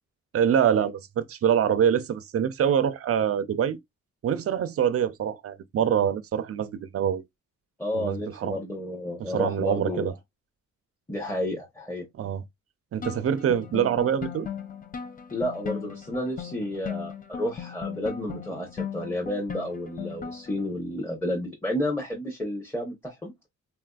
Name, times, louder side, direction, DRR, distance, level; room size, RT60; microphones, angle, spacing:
voice 1, 0.3-3.8 4.2-7.2 7.9-8.6 9.2-10.1 12.2-12.4 12.9-14.5, right 9 dB, 50° right, 0.4 m, -25 dB
voice 2, 7.8-10.1 11.1-12.1 15.3-23.3, left 1 dB, 10° left, 0.8 m, -31 dB
sound 1, 13.0-20.7, left 7 dB, 30° left, 0.4 m, -37 dB
3.6 x 2.5 x 2.2 m
wide cardioid pair, 130°, 31 cm